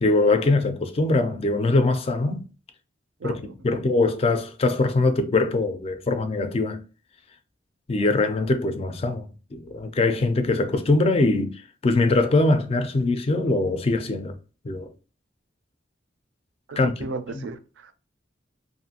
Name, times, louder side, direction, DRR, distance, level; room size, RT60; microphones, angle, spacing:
voice 1, 0.0-2.5 3.2-6.8 7.9-14.4 14.6-14.9 16.8-17.0 17.3-17.4, left 2 dB, 30° left, 0.3 m, -22 dB
voice 2, 16.7-17.9, right 3 dB, 75° right, 0.4 m, -35 dB
2.5 x 2.4 x 2.7 m
head